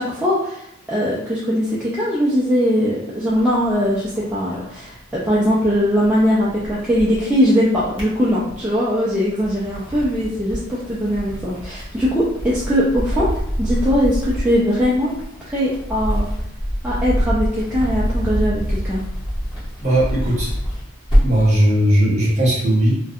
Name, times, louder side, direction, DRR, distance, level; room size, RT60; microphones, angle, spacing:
voice 1, 0.0-13.3 13.6-15.1 15.5-16.3 16.8-19.0, equal, 5° right, -9 dB, 0.3 m, -20 dB
sound 1, 3.3-5.5 5.8-7.4 7.7-8.8 9.3-21.5, equal, 20° left, 0.8 m, -26 dB
voice 2, 19.8-20.5 21.2-23.0, right 1 dB, 30° right, -5 dB, 0.8 m, -17 dB
2.3 x 2.1 x 2.6 m, 0.77 s
head